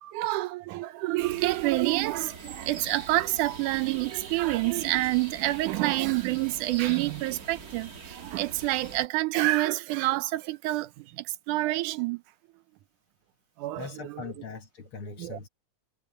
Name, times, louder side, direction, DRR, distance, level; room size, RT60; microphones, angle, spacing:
voice 1, 0.0-12.2 13.6-14.3 15.1-15.4, right 18 dB, 80° right, 2.2 m, -28 dB
sound 1, 1.2-9.1, right 5 dB, 35° right, 1.6 m, -43 dB
voice 2, 13.7-15.5, left 5 dB, 50° left, 2.0 m, -41 dB
omnidirectional pair, 3.6 m